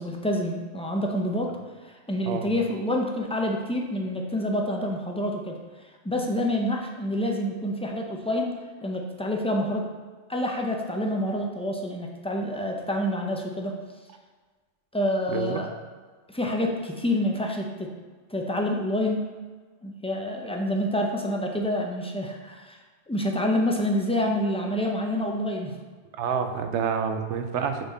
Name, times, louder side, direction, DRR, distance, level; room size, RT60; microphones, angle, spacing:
voice 1, 0.0-1.5 2.1-5.6 6.0-8.5 8.8-9.9 10.3-13.7 14.9-15.7 16.3-17.9 18.3-19.3 19.8-22.8 23.1-25.7, left 1 dB, 10° left, 1 dB, 0.4 m, -27 dB
voice 2, 15.3-15.6 26.1-27.9, right 7 dB, 80° right, 6 dB, 0.9 m, -28 dB
6.6 x 4.1 x 4.1 m, 1.4 s
omnidirectional pair, 1.2 m